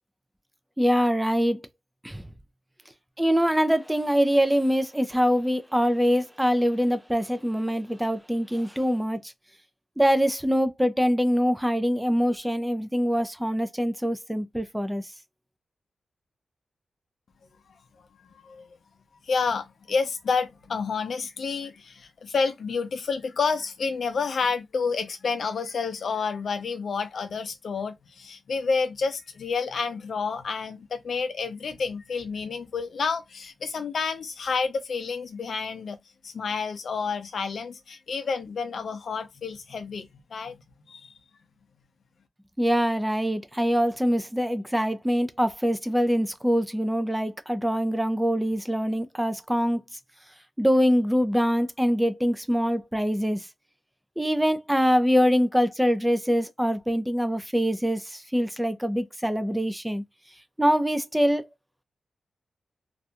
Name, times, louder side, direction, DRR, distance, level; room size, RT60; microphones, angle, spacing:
voice 1, 0.8-1.6 2.0-2.2 3.2-9.3 10.0-15.0 42.6-49.8 50.6-53.5 54.2-60.0 60.6-61.5, equal, 5° right, 0.3 m, -24 dB
voice 2, 18.2-18.7 19.2-36.0 36.2-40.5 40.9-41.1, left 5 dB, 65° left, 0.5 m, -29 dB
2.4 x 2.2 x 2.7 m
wide cardioid pair, 125°, 0 cm